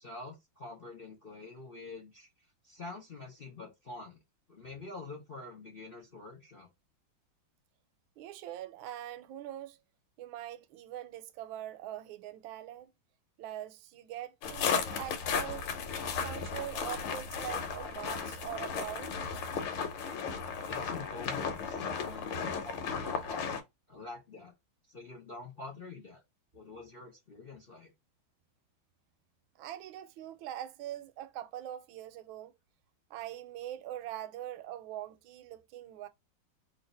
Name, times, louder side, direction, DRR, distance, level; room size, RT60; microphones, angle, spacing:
voice 1, 0.0-2.3 2.6-4.2 4.5-6.7 20.6-23.5 23.9-24.5 24.9-26.2 26.5-27.9, left 3 dB, 45° left, 0.7 m, -46 dB
voice 2, 8.2-9.8 10.2-12.9 13.4-15.7 16.2-19.4 29.6-32.5 33.1-36.1, right 12 dB, 75° right, 1.3 m, -42 dB
sound 1, 14.4-23.6, left 6 dB, 85° left, 1.7 m, -35 dB
3.2 x 2.7 x 4.0 m
omnidirectional pair, 2.3 m